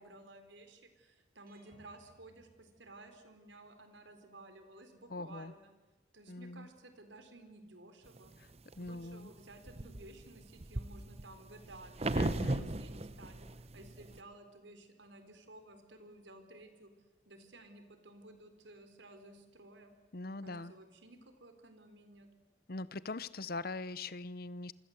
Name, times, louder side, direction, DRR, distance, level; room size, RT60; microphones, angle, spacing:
voice 1, 0.0-5.7 6.1-8.3 8.8-13.5 13.7-16.9 17.3-19.9 20.3-22.3, right 2 dB, 75° right, 8 dB, 4.1 m, -55 dB
sound 1, 1.5-3.5, right 1 dB, 50° right, 5.8 m, -66 dB
voice 2, 5.1-5.5 6.3-6.7 8.8-9.3 12.1-12.7 20.1-20.7 22.7-24.7, left 2 dB, 50° left, 17 dB, 0.9 m, -42 dB
sound 2, 8.2-8.9 9.4-14.2, right 2 dB, 35° right, 1.0 m, -37 dB
27.5 x 24.5 x 8.1 m, 1.2 s
head